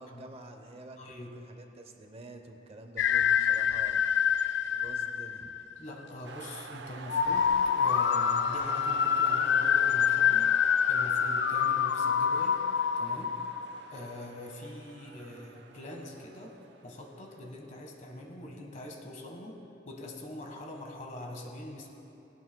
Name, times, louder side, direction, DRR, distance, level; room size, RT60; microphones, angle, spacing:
voice 1, 0.0-4.0 4.7-5.5, right 2 dB, 35° right, 5 dB, 0.8 m, -48 dB
voice 2, 1.0-1.4 4.0-4.1 5.8-10.5 10.9-12.6 13.0-13.4 13.9-16.5 16.8-19.6 19.9-21.9, left 1 dB, 45° left, 1 dB, 1.4 m, -43 dB
sound 1, 3.0-5.8 7.1-14.2, left 8 dB, 65° left, 0.3 m, -26 dB
sound 2, 6.2-17.9, right 5 dB, 70° right, 0.5 m, -48 dB
18.0 x 17.0 x 2.2 m, 2.9 s
head